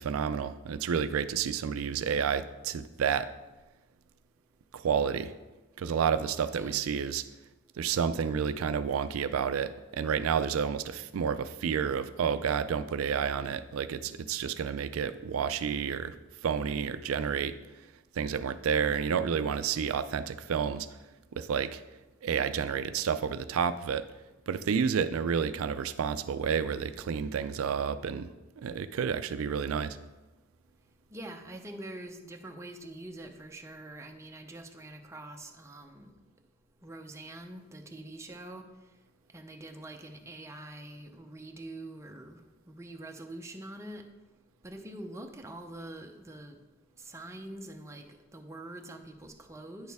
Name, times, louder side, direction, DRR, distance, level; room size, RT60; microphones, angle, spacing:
voice 1, 0.0-3.3 4.7-5.3 5.8-7.2 7.8-16.1 16.4-17.5 18.2-20.9 21.3-21.8 22.2-24.0 24.5-28.3 28.6-30.0, right 7 dB, 85° right, 12 dB, 0.4 m, -30 dB
voice 2, 31.1-36.1 36.8-38.6 39.3-42.4 42.7-44.0 44.6-46.6 47.0-48.0 48.3-49.9, right 1 dB, 15° right, 3 dB, 0.7 m, -44 dB
9.4 x 6.4 x 3.5 m, 1.1 s
head